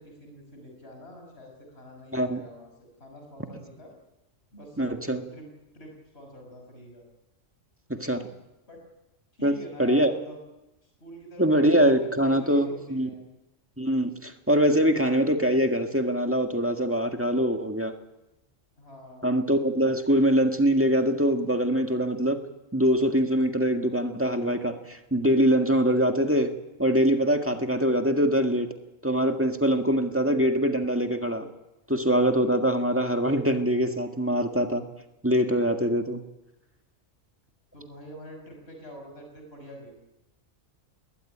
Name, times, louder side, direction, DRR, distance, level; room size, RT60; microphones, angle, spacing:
voice 1, 0.0-3.9 4.5-5.5 5.7-7.0 8.7-8.8 9.3-10.4 10.8-13.2 18.8-19.3 37.7-40.0, equal, 50° left, 3 dB, 5.9 m, -46 dB
voice 2, 4.8-5.2 7.9-8.2 9.4-10.1 11.4-13.1 13.8-17.9 19.2-22.4 22.7-26.5 26.8-28.7 29.0-31.5 31.9-34.8 35.2-36.2, equal, 10° right, 5 dB, 1.7 m, -23 dB
21.0 x 18.0 x 10.0 m, 0.96 s
omnidirectional pair, 1.3 m